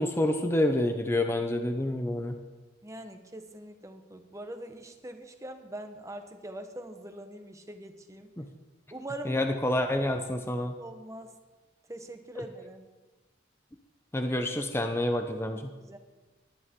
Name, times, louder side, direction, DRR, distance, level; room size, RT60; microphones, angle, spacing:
voice 1, 0.0-2.4 8.4-8.5 9.2-10.7 14.1-15.7, left 1 dB, 15° left, 6 dB, 0.7 m, -28 dB
voice 2, 2.8-8.3 8.9-9.4 10.8-11.3 11.9-12.9 15.8-16.0, right 1 dB, 15° right, 6 dB, 1.1 m, -42 dB
18.5 x 11.5 x 3.8 m, 1.2 s
head